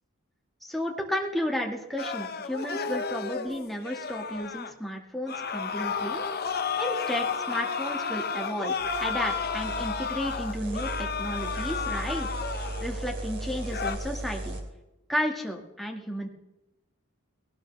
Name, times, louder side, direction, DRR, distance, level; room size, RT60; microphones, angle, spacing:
voice 1, 0.6-6.2 6.8-12.3 12.8-14.6 15.1-16.3, equal, ahead, 0 dB, 2.1 m, -33 dB
sound 1, 2.0-4.7 5.3-13.1 13.5-14.0, left 5 dB, 45° left, 1.0 m, -32 dB
sound 2, 8.8-14.6, right 1 dB, 55° right, 3.0 m, -36 dB
20.0 x 18.0 x 3.5 m, 0.99 s
head